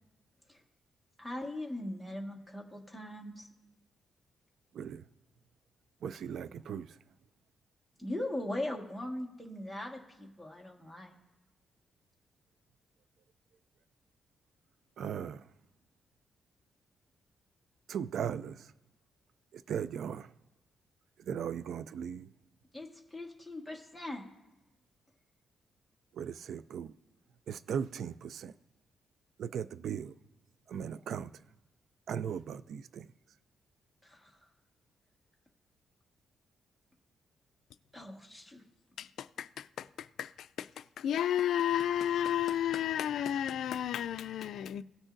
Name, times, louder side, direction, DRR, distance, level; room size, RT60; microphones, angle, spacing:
voice 1, 1.2-3.5 8.0-11.1 22.7-24.2 34.0-34.3 37.9-38.6, left 1 dB, ahead, 1.5 m, -40 dB
voice 2, 4.7-5.1 6.0-7.0 15.0-15.5 17.9-18.7 19.5-20.3 21.2-22.3 26.1-26.9 27.5-28.5 29.4-30.2 30.7-31.5 32.1-33.1, right 8 dB, 70° right, 0.3 m, -38 dB
voice 3, 39.0-40.7 41.0-44.8, left 10 dB, 80° left, 0.3 m, -32 dB
17.5 x 6.2 x 2.6 m
cardioid pair, 120°, 0 cm